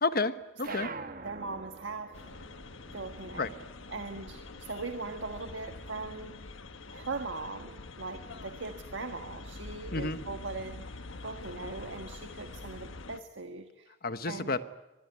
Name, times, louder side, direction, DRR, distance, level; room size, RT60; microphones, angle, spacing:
voice 1, 0.0-0.9 3.4-3.5 9.9-10.2 14.0-14.6, left 3 dB, 50° left, 11 dB, 1.3 m, -30 dB
sound 1, 0.6-5.5 5.8-7.2, right 4 dB, 45° right, 1.2 m, -47 dB
voice 2, 1.2-2.2 2.9-3.5 3.9-6.3 6.9-10.9 11.2-13.9 14.2-14.6, right 3 dB, 70° right, 7 dB, 1.5 m, -40 dB
sound 2, 2.1-13.2, left 2 dB, 85° left, 1.3 m, -45 dB
25.5 x 21.5 x 9.6 m, 0.97 s
head